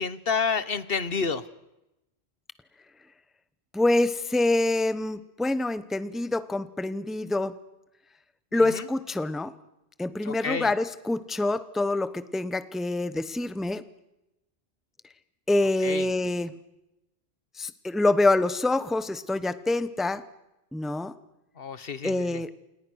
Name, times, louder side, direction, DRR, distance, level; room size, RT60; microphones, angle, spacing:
voice 1, 0.0-1.5 8.5-8.9 10.2-10.7 15.8-16.1 21.6-22.4, left 5 dB, 60° left, 15 dB, 1.3 m, -30 dB
voice 2, 3.7-7.5 8.5-9.5 10.0-13.8 15.5-16.5 17.6-20.2 20.7-21.1 22.0-22.5, left 2 dB, ahead, 14 dB, 0.9 m, -26 dB
29.5 x 28.0 x 6.4 m, 0.94 s
omnidirectional pair, 1.1 m